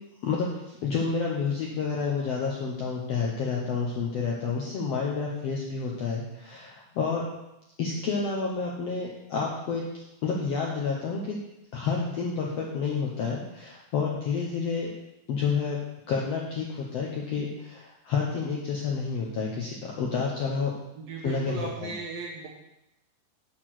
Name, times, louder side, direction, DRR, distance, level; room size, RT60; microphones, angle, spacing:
voice 1, 0.2-7.3 7.8-11.4 11.7-14.9 15.3-15.8 16.1-20.7 21.2-21.5 21.8-21.9, left 5 dB, 70° left, -2 dB, 1.5 m, -29 dB
voice 2, 21.0-22.5, right 3 dB, 60° right, -2 dB, 1.8 m, -36 dB
6.6 x 6.0 x 6.1 m, 0.92 s
omnidirectional pair, 4.0 m